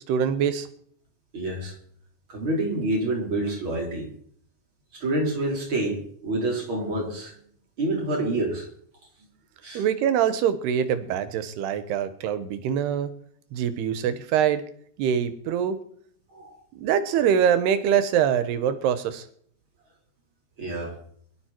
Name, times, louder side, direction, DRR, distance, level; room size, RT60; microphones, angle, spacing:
voice 1, 0.1-0.7 9.7-13.1 13.5-14.6 15.0-15.8 16.8-19.2, right 8 dB, 85° right, 12 dB, 3.2 m, -24 dB
voice 2, 1.3-1.8 2.3-4.1 4.9-7.4 7.8-8.7 9.6-9.9 16.3-16.6 20.6-21.0, right 2 dB, 30° right, 0 dB, 5.3 m, -27 dB
22.5 x 12.5 x 4.5 m, 0.63 s
omnidirectional pair, 4.6 m